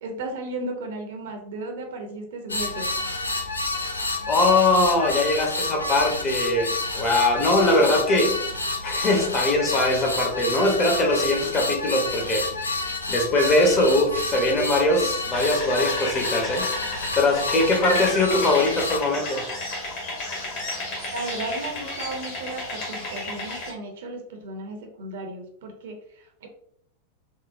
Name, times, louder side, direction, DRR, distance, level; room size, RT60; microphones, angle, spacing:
voice 1, 0.0-2.9 21.1-26.5, right 2 dB, 60° right, 3 dB, 0.6 m, -35 dB
sound 1, 2.5-19.0, left 3 dB, 80° left, 0.4 m, -29 dB
voice 2, 4.3-8.4 8.8-12.4 12.8-16.7 17.2-19.5, left 2 dB, 30° left, 1 dB, 0.8 m, -21 dB
sound 2, 15.3-23.7, left 2 dB, 50° left, 1.3 m, -32 dB
3.7 x 2.1 x 2.5 m, 0.66 s
figure-of-eight pair, 90°, 0 cm